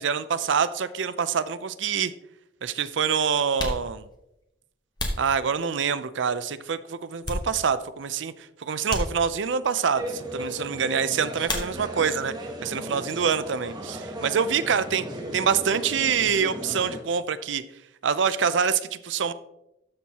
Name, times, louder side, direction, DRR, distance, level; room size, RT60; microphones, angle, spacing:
voice 1, 0.0-2.1 2.6-4.1 5.2-12.3 12.6-15.1 15.3-17.6 18.0-19.3, right 6 dB, 80° right, 14 dB, 0.5 m, -26 dB
sound 1, 1.7-1.8 2.7-2.8 3.4-6.1 6.6-8.0 8.2-8.4 8.8-9.7 11.4-12.2 12.5-13.2 13.4-15.6, left 1 dB, 20° left, 1.1 m, -35 dB
sound 2, 10.0-17.0, right 1 dB, 20° right, 1.0 m, -36 dB
12.5 x 6.2 x 2.9 m, 0.87 s
head